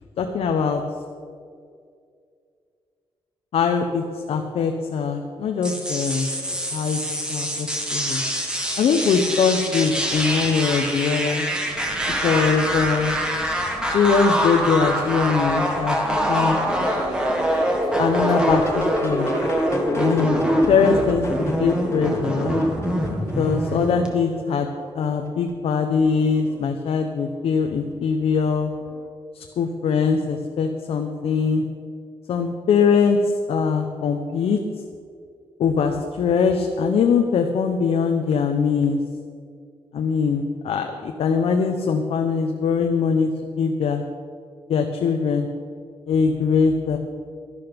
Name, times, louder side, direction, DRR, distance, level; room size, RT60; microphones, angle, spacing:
voice 1, 0.2-0.8 3.5-6.3 6.7-8.2 8.8-11.5 12.2-13.2 13.9-16.0 16.3-16.6 17.9-19.3 19.9-20.4 20.7-21.2 21.6-22.6 23.4-24.7 24.9-28.7 29.3-31.6 32.3-34.6 35.6-39.0 39.9-44.0 44.7-45.5 46.1-47.0, left 5 dB, 75° left, 4 dB, 0.8 m, -22 dB
sound 1, 5.6-24.1, equal, 10° right, 1.7 m, -24 dB
sound 2, 11.7-20.3, right 1 dB, 55° right, 3.2 m, -40 dB
sound 3, 16.7-24.4 25.0-25.6 26.0-26.7 27.9-28.0 28.7-29.1 31.2-31.3 33.7-33.8, left 2 dB, 25° left, 1.5 m, -36 dB
12.0 x 12.0 x 5.2 m, 2.3 s
wide cardioid pair, 130°, 10 cm